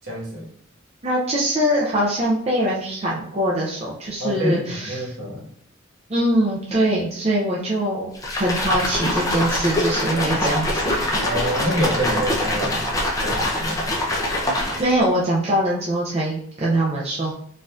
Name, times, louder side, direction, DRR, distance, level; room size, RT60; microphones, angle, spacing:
voice 1, 0.0-0.5 4.2-5.5 11.2-12.9 13.2-13.8, equal, 70° right, -4 dB, 1.4 m, -26 dB
voice 2, 1.0-5.1 6.1-11.0 14.8-17.3, right 1 dB, 30° right, -5 dB, 0.5 m, -22 dB
sound 1, 8.1-15.0, left 1 dB, 15° left, 0.5 m, -24 dB
4.1 x 2.6 x 2.4 m, 0.68 s
head